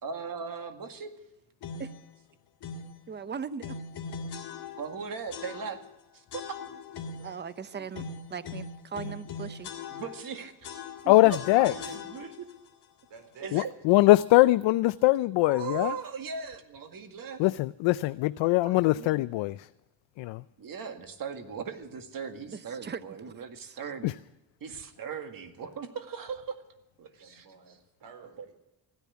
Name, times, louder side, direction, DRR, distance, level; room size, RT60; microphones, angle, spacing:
voice 1, 0.0-1.1 4.8-5.8 6.1-6.2 6.5-6.6 9.9-10.7 11.3-12.5 13.4-13.7 15.5-17.4 18.6-19.2 20.6-24.2 24.6-26.6 27.0-27.5 28.4-28.5, right 6 dB, 45° right, 2.1 m, -38 dB
sound 1, 1.6-2.0 2.6-3.0 3.6-5.0 5.3-5.9 6.3-7.4 7.9-10.3 10.6-12.5, left 5 dB, 60° left, 2.1 m, -40 dB
voice 2, 3.1-3.8 7.2-9.7 11.0-11.1 22.5-23.0 23.3-23.4 23.6-23.8, right 6 dB, 25° right, 0.7 m, -39 dB
voice 3, 6.4-7.9 10.9-11.5 13.1-13.5 22.6-23.4 27.2-28.5, right 5 dB, 65° right, 4.1 m, -55 dB
voice 4, 11.1-11.7 13.5-15.9 17.4-19.7 20.2-20.4 24.0-24.1, left 18 dB, 75° left, 0.5 m, -22 dB
15.5 x 10.5 x 8.4 m
cardioid pair, 120°, 45 cm